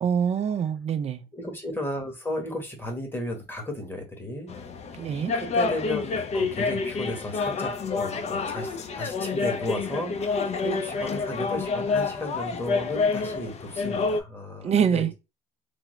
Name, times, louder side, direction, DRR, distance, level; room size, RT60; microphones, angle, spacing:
voice 1, 0.0-1.2 5.0-5.3 14.6-15.1, right 7 dB, 40° right, 0.5 m, -25 dB
voice 2, 1.3-4.5 5.3-15.1, left 1 dB, 10° left, 1.2 m, -34 dB
sound 1, 4.5-14.2, left 4 dB, 40° left, 0.5 m, -28 dB
3.4 x 2.0 x 3.1 m
cardioid pair, 110°, 17 cm